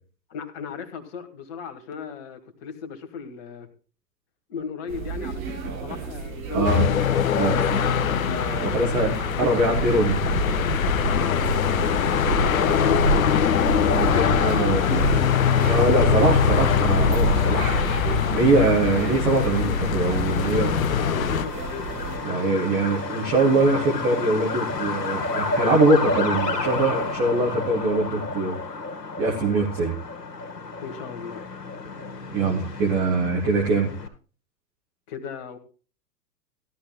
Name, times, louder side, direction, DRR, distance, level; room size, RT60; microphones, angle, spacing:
voice 1, 0.3-3.7 4.5-7.9 11.0-13.5 14.1-14.7 17.2-17.8 20.3-22.2 30.8-31.5 35.1-35.6, left 6 dB, 35° left, 9 dB, 1.8 m, -37 dB
sound 1, 4.9-22.2, right 4 dB, 55° right, 4.3 m, -29 dB
voice 2, 6.5-6.9 7.4-7.6 8.6-10.2 13.9-15.2 15.7-17.6 18.3-20.8 22.2-28.6 29.2-30.0 32.3-33.9, right 2 dB, 5° right, -2 dB, 0.4 m, -23 dB
sound 2, 6.6-21.5, left 9 dB, 55° left, 0.8 m, -23 dB
Truck, 14.1-34.1, left 3 dB, 75° left, 2.0 m, -32 dB
16.0 x 12.0 x 2.2 m, 0.37 s
figure-of-eight pair, 105°, 49 cm